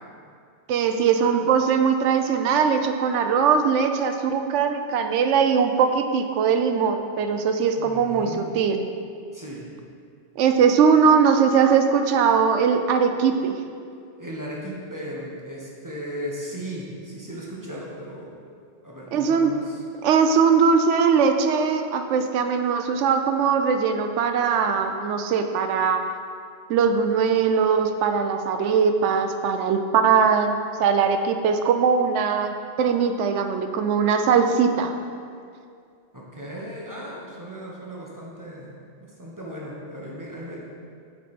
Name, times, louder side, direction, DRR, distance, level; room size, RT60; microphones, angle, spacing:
voice 1, 0.7-8.8 10.4-13.6 19.1-19.6 20.0-26.1 26.7-34.9, right 6 dB, 85° right, 7 dB, 0.9 m, -20 dB
voice 2, 7.7-8.5 9.3-9.7 14.2-18.4 18.8-19.8 36.1-40.7, equal, 15° right, -5 dB, 1.1 m, -36 dB
8.2 x 4.7 x 4.3 m, 2.3 s
omnidirectional pair, 1.2 m